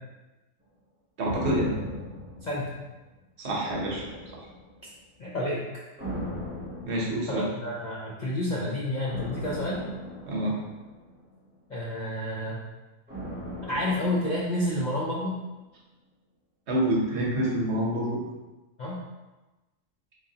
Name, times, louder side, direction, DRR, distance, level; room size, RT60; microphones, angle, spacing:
sound 1, 1.2-3.1 3.6-4.9 6.0-7.7 9.1-11.5 13.1-15.3 15.5-15.6, equal, 10° right, 0.5 m, -38 dB
voice 1, 1.2-1.7 3.4-4.1 4.3-4.4 6.9-7.5 10.3-10.6 16.7-18.2, right 1 dB, 60° right, -2 dB, 1.0 m, -27 dB
voice 2, 5.2-5.6 7.3-9.8 11.7-12.6 13.7-15.4 18.8-19.0, left 1 dB, 60° left, -5 dB, 0.5 m, -29 dB
3.7 x 3.2 x 2.7 m, 1.1 s
omnidirectional pair, 1.4 m